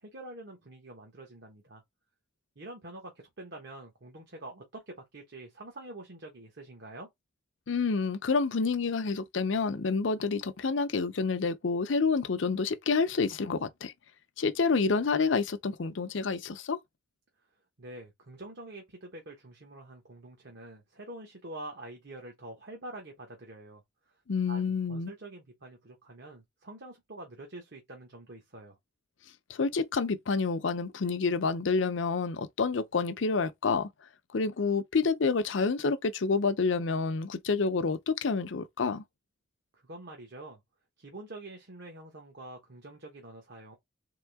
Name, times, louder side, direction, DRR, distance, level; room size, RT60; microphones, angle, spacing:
voice 1, 0.0-1.8 2.6-7.1 17.8-24.2 24.5-28.8 39.7-40.6 41.0-43.8, right 2 dB, 60° right, 1.2 m, -46 dB
voice 2, 7.7-13.9 14.4-16.8 24.3-25.1 29.5-33.9 34.3-39.0, left 4 dB, 75° left, 0.6 m, -28 dB
3.7 x 3.5 x 3.5 m
head